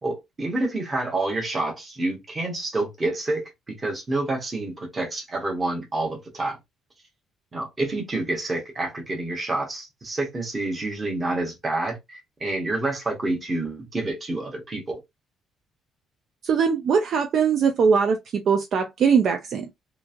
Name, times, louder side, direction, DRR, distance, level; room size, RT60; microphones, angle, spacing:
voice 1, 0.0-6.6 7.5-15.0, right 2 dB, 20° right, 1.0 m, -28 dB
voice 2, 16.4-19.7, right 6 dB, 45° right, 0.3 m, -21 dB
3.0 x 2.4 x 2.4 m
cardioid pair, 170°, 0 cm